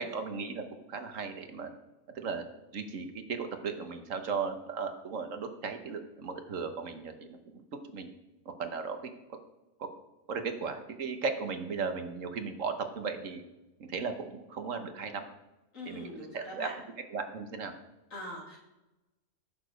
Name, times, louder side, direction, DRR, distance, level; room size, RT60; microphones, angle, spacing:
voice 1, 0.0-1.7 2.1-2.4 2.7-7.4 7.9-8.1 8.6-9.0 9.3-9.4 9.8-9.9 10.3-13.4 13.8-15.3 15.8-16.7 17.1-17.7, right 5 dB, 65° right, 7 dB, 1.4 m, -36 dB
voice 2, 15.7-16.7 18.1-18.6, left 1 dB, 65° left, -1 dB, 2.9 m, -42 dB
15.0 x 6.8 x 5.1 m, 1.0 s
omnidirectional pair, 1.5 m